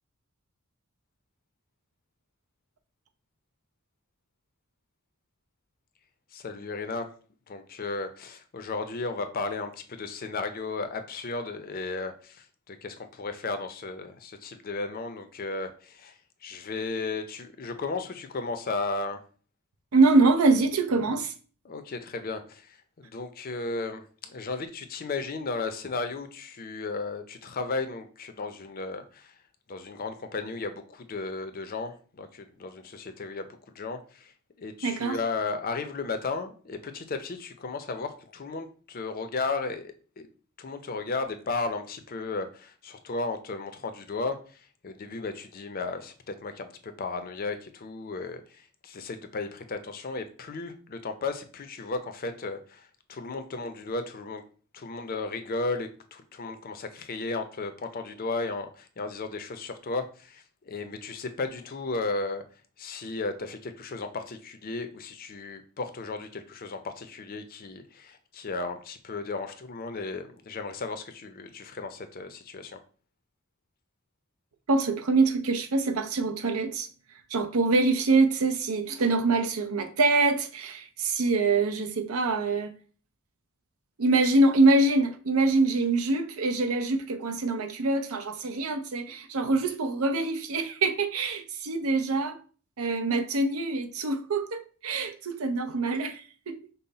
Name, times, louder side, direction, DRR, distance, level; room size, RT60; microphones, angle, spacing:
voice 1, 6.3-7.1 7.5-16.1 16.4-19.2 21.6-29.3 29.7-33.5 33.7-34.3 34.6-40.3 40.6-44.4 44.8-48.4 48.8-54.4 54.7-62.4 62.8-72.8, left 3 dB, 45° left, 0.5 m, -34 dB
voice 2, 19.9-21.3 34.8-35.2 74.7-76.9 77.3-82.7 84.0-92.4 92.8-96.6, right 3 dB, 85° right, 0.6 m, -24 dB
5.5 x 2.1 x 3.9 m
head